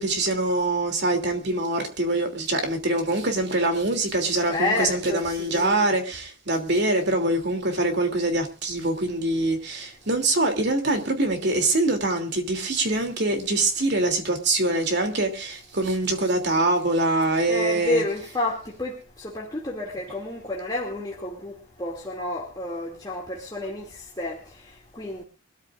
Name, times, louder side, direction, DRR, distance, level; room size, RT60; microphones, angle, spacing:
voice 1, 0.0-18.0, right 2 dB, 55° right, 3.0 m, -24 dB
voice 2, 4.5-5.9 17.5-25.2, left 2 dB, 20° left, 2.6 m, -30 dB
24.0 x 13.5 x 2.5 m
head